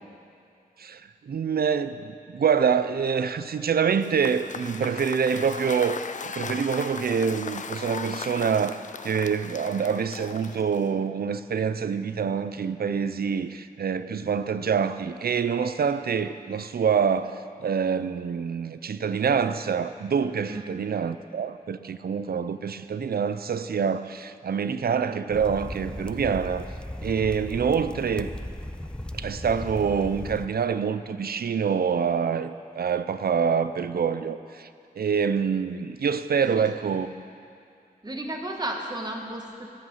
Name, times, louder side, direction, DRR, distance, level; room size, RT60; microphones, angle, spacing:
voice 1, 0.8-26.7 27.0-28.3 29.1-34.7 35.0-37.1, right 6 dB, 75° right, 12 dB, 0.6 m, -26 dB
Cheering / Applause / Crowd, 3.9-11.0, left 5 dB, 50° left, 0.5 m, -37 dB
sound 1, 25.3-30.5, left 1 dB, 5° left, 0.5 m, -37 dB
voice 2, 38.0-39.7, right 1 dB, 25° right, 2 dB, 1.7 m, -33 dB
16.0 x 11.0 x 5.6 m, 2.5 s
wide cardioid pair, 90°, 16 cm